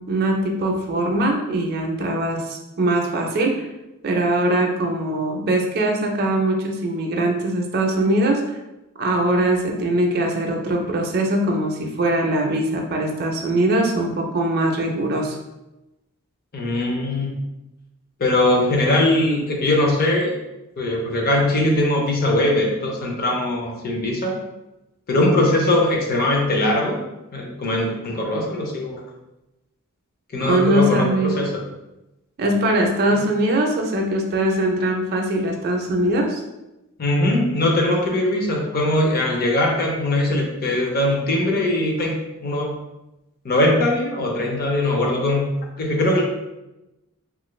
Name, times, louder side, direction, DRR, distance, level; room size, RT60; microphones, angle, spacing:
voice 1, 0.1-3.7 4.0-8.6 9.0-15.4 30.4-31.3 32.4-36.4, right 1 dB, 45° right, 1 dB, 0.4 m, -21 dB
voice 2, 16.5-17.4 18.2-20.3 20.8-24.4 25.1-27.0 27.3-29.0 30.3-31.5 37.0-42.8 43.4-45.5 45.8-46.2, left 1 dB, 45° left, 0 dB, 0.6 m, -21 dB
2.8 x 2.4 x 3.0 m, 0.96 s
head